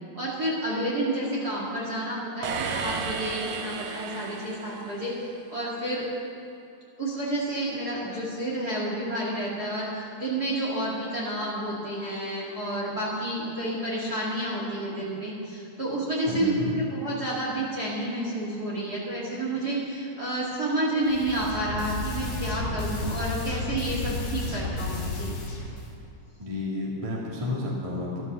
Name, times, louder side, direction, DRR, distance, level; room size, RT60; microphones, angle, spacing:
voice 1, 0.2-5.1 5.5-6.1 7.0-25.4, right 1 dB, 30° right, -5 dB, 2.0 m, -30 dB
sound 1, 2.4-5.3, right 5 dB, 70° right, 2.4 m, -33 dB
voice 2, 16.2-16.8 26.4-28.2, left 2 dB, 10° right, -4 dB, 1.6 m, -31 dB
sound 2, 21.0-25.9, left 2 dB, 55° left, 4.4 m, -32 dB
13.0 x 12.5 x 6.8 m, 2.7 s
omnidirectional pair, 4.6 m